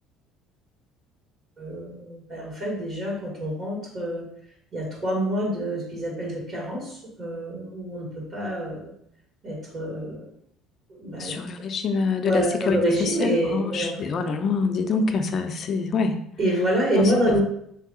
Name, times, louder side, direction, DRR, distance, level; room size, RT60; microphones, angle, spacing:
voice 1, 1.6-4.2 4.7-8.1 8.3-8.9 9.4-10.3 10.9-11.3 12.2-14.0 16.4-17.4, right 1 dB, 45° right, -4 dB, 1.6 m, -27 dB
voice 2, 11.2-16.1 16.9-17.0, left 4 dB, 45° left, 6 dB, 0.5 m, -25 dB
3.6 x 2.7 x 3.8 m, 0.71 s
cardioid pair, 110°, 0 cm